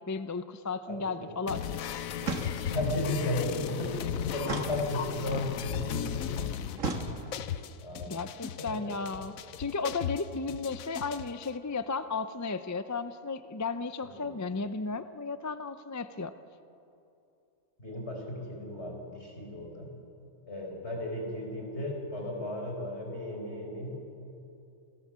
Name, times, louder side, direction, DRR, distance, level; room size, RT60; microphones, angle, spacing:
voice 1, 0.1-1.8 8.1-16.3, left 4 dB, 25° left, 11 dB, 0.3 m, -34 dB
voice 2, 0.9-1.3 2.7-6.9 7.8-8.2 8.7-9.0 14.0-14.3 17.8-19.9 20.5-23.9, left 1 dB, 50° left, 1 dB, 5.2 m, -35 dB
sound 1, 1.5-11.5, left 9 dB, 80° left, 1.2 m, -36 dB
sound 2, 2.2-3.0 4.4-5.4 6.8-7.6, right 3 dB, 70° right, 2.1 m, -36 dB
28.0 x 18.0 x 7.5 m, 2.7 s
omnidirectional pair, 1.4 m